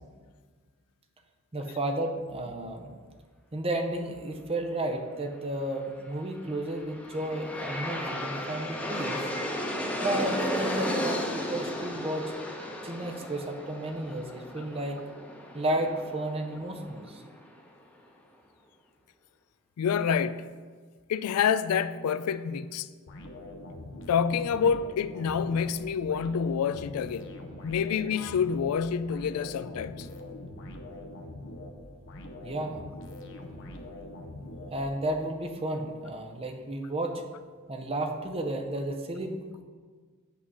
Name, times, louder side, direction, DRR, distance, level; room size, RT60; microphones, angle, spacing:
voice 1, 1.5-2.9 3.5-9.2 10.0-12.3 12.8-15.0 15.5-17.2 32.4-32.8 34.7-37.2 37.7-39.6, right 1 dB, 25° right, 4 dB, 0.7 m, -32 dB
Aircraft, 6.5-17.5, equal, 5° left, 0.9 m, -34 dB
voice 2, 19.8-20.6 21.1-22.9 24.1-27.3 27.6-30.1, left 7 dB, 80° left, 14 dB, 0.3 m, -27 dB
sound 1, 23.1-35.3, left 1 dB, 60° left, 0.8 m, -43 dB
8.5 x 3.7 x 6.1 m, 1.5 s
head